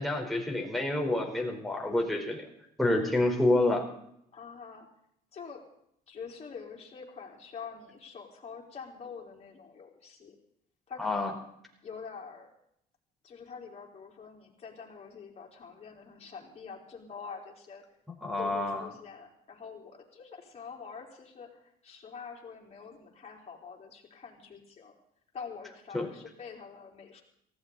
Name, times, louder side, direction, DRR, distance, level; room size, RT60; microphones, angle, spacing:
voice 1, 0.0-2.5 2.8-3.8 11.0-11.3 18.2-18.9 25.9-26.1, left 2 dB, ahead, -1 dB, 4.1 m, -28 dB
voice 2, 4.3-4.9 5.3-5.6 6.1-10.4 10.9-11.3 11.8-12.5 13.2-17.8 18.4-21.5 21.8-25.0 25.3-27.2, left 6 dB, 40° left, -1 dB, 4.2 m, -45 dB
19.0 x 15.5 x 4.1 m, 0.73 s
cardioid pair, 110°, 17 cm